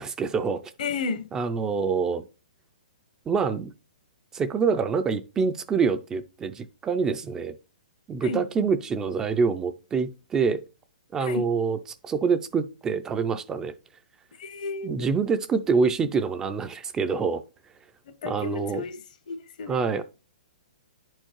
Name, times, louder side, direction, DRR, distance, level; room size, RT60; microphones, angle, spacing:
voice 1, 0.0-0.6 1.3-2.2 3.3-3.7 4.3-7.6 8.1-10.6 11.1-11.8 12.0-13.7 14.8-17.4 18.2-18.8 19.7-20.0, right 5 dB, 15° right, 0.3 m, -26 dB
voice 2, 0.8-1.3 8.2-8.4 11.2-11.5 14.4-15.1 18.2-19.0 19.3-19.8, left 4 dB, 65° left, 0.9 m, -32 dB
9.8 x 4.5 x 3.0 m
hypercardioid pair, 150°, 5 cm